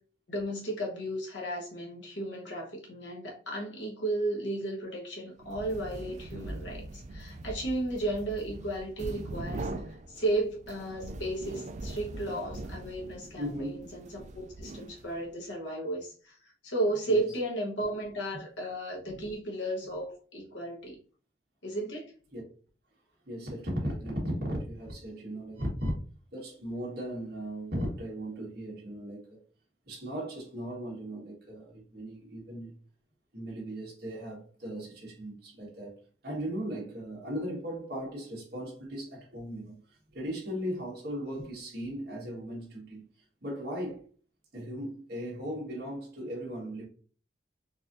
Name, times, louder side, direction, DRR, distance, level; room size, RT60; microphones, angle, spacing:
voice 1, 0.3-9.7 10.1-21.0 21.6-22.1, right 1 dB, 80° left, 1.1 m, -34 dB
sound 1, 5.4-15.4, right 2 dB, 40° right, 0.3 m, -42 dB
voice 2, 13.4-13.8 17.1-17.2 19.1-19.3 22.3-22.4 23.3-25.9 26.3-29.3 29.9-32.7 33.3-36.0 36.2-39.8 40.1-43.1 43.4-44.0 44.5-46.9, equal, 60° right, 1.4 m, -37 dB
4.1 x 2.6 x 2.6 m
head